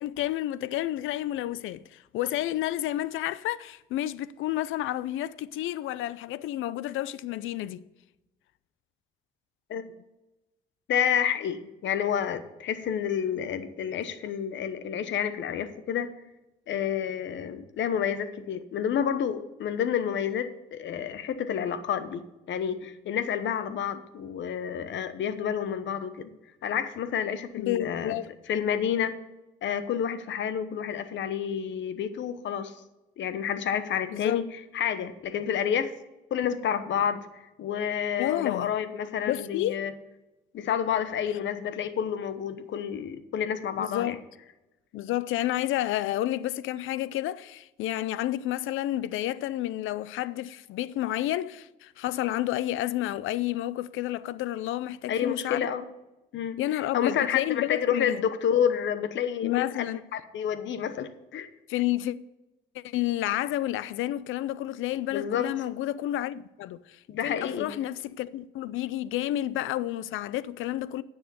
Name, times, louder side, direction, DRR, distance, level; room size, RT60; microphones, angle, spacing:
voice 1, 0.0-7.8 27.6-28.3 34.1-34.4 38.2-38.7 39.3-39.8 43.8-44.2 44.9-55.7 56.6-58.2 59.4-60.0 61.7-62.2 62.7-71.0, left 14 dB, 85° left, 0.5 m, -30 dB
voice 2, 10.9-16.1 16.7-22.2 22.5-26.3 26.6-28.2 28.5-29.2 29.6-32.7 33.2-35.9 36.3-37.3 37.6-39.9 40.5-44.2 55.1-55.9 56.3-61.5 65.1-65.5 67.1-67.7, left 8 dB, 70° left, 1.0 m, -29 dB
10.0 x 6.6 x 6.9 m
cardioid pair, 90°, 20 cm